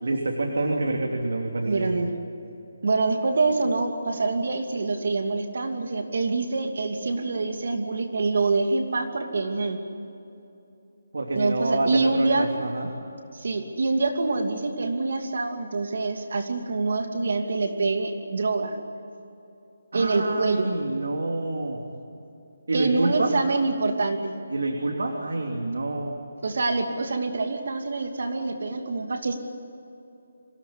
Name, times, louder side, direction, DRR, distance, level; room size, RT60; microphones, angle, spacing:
voice 1, 0.0-1.9 11.1-12.9 19.9-21.8 22.7-23.3 24.5-26.2, right 2 dB, 85° right, 1 dB, 3.3 m, -27 dB
voice 2, 1.6-2.1 2.8-9.8 11.3-12.5 13.3-18.8 19.9-20.7 22.7-24.3 26.4-29.4, right 3 dB, 55° right, 5 dB, 2.6 m, -25 dB
26.0 x 18.0 x 9.8 m, 2.8 s
hypercardioid pair, 175°, 0 cm